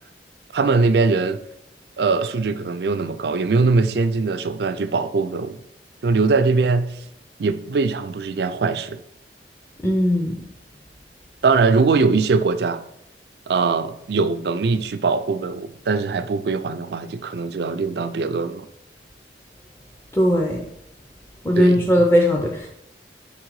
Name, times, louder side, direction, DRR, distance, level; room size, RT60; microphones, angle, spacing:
voice 1, 0.5-1.4 2.0-5.6 6.0-7.0 7.4-9.0 11.4-12.8 13.5-18.7 21.5-21.9, right 4 dB, 60° right, 11 dB, 0.4 m, -21 dB
voice 2, 9.8-10.4 20.1-20.6 21.4-22.7, equal, 15° left, 0 dB, 0.5 m, -18 dB
5.6 x 3.7 x 4.6 m, 0.76 s
head